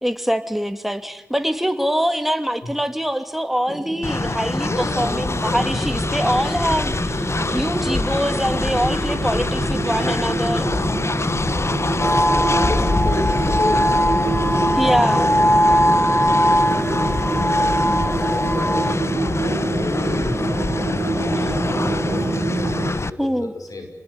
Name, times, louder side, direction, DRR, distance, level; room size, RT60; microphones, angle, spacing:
voice 1, 0.0-10.7 14.7-15.4 21.4-21.5 23.2-23.5, equal, 5° right, 7 dB, 2.8 m, -24 dB
sound 1, 3.7-22.9, right 3 dB, 65° right, 1.9 m, -27 dB
Train, 4.0-23.1, left 3 dB, 50° left, 1.1 m, -25 dB
voice 2, 4.7-5.8 6.6-6.8 11.9-19.0 19.3-23.9, left 2 dB, 90° left, 6 dB, 5.5 m, -33 dB
sound 2, 12.0-18.9, equal, 30° left, 1.3 m, -20 dB
29.0 x 20.5 x 9.9 m, 0.89 s
wide cardioid pair, 55°, 6 cm